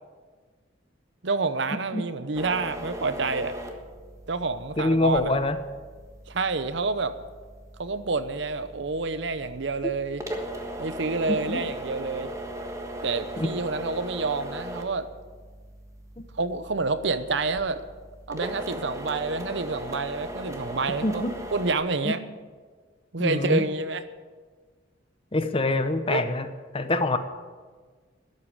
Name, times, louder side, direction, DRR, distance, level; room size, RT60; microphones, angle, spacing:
voice 1, 1.2-3.6 4.3-5.3 6.3-7.1 7.8-10.2 10.8-12.3 13.0-15.1 16.4-17.8 18.3-21.2 21.5-22.2 23.1-24.0 26.1-26.2, right 3 dB, 60° right, 12 dB, 0.8 m, -28 dB
sound 1, 2.3-21.7, right 1 dB, 15° right, 1.4 m, -39 dB
voice 2, 4.8-5.6 9.8-9.9 11.3-11.6 13.4-13.5 16.2-16.3 21.0-21.3 22.0-22.1 23.2-23.7 25.3-26.5 26.7-27.2, left 2 dB, 30° left, 10 dB, 0.8 m, -25 dB
12.5 x 8.4 x 10.0 m, 1.5 s
head